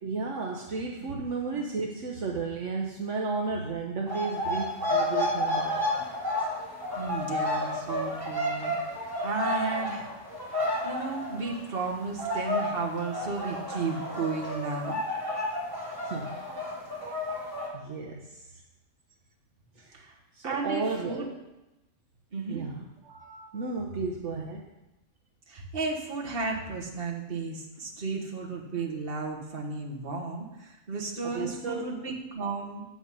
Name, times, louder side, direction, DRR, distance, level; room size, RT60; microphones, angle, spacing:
voice 1, 0.0-5.9 16.0-16.4 17.7-18.6 19.8-20.0 20.3-21.3 22.5-24.6 31.2-31.9, right 4 dB, 70° right, 0 dB, 1.2 m, -33 dB
sound 1, 4.1-11.9 12.2-17.7, left 1 dB, 15° right, 2.9 m, -31 dB
voice 2, 6.9-10.1 10.8-15.0 19.9-20.1 20.4-21.3 22.3-22.6 25.5-32.8, right 3 dB, 45° right, 0 dB, 1.7 m, -34 dB
8.9 x 8.0 x 5.4 m, 0.98 s
omnidirectional pair, 1.3 m